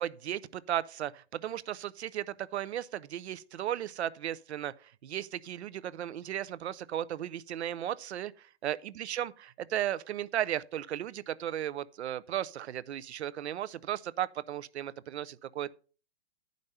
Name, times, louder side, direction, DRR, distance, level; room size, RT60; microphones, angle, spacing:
voice 1, 0.0-15.7, right 11 dB, 70° right, 0.6 m, -35 dB
11.0 x 5.2 x 5.4 m
hypercardioid pair, 170°, 34 cm